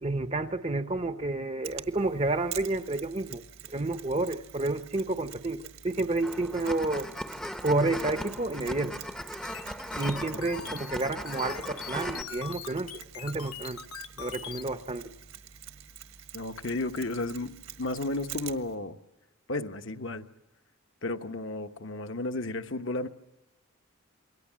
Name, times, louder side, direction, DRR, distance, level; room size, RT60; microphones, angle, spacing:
voice 1, 0.0-3.4 3.7-7.1 7.6-9.0 10.0-13.8 14.2-15.1, right 2 dB, 30° right, 0.8 m, -30 dB
Mechanisms, 1.6-18.7, right 10 dB, 70° right, 1.6 m, -47 dB
sound 1, 6.2-12.2, equal, 5° left, 0.8 m, -38 dB
sound 2, 9.4-14.6, left 8 dB, 80° left, 1.1 m, -42 dB
voice 2, 16.3-17.5 17.8-19.0 19.5-20.2 21.0-23.1, left 2 dB, 55° left, 1.1 m, -33 dB
28.0 x 23.0 x 7.4 m
head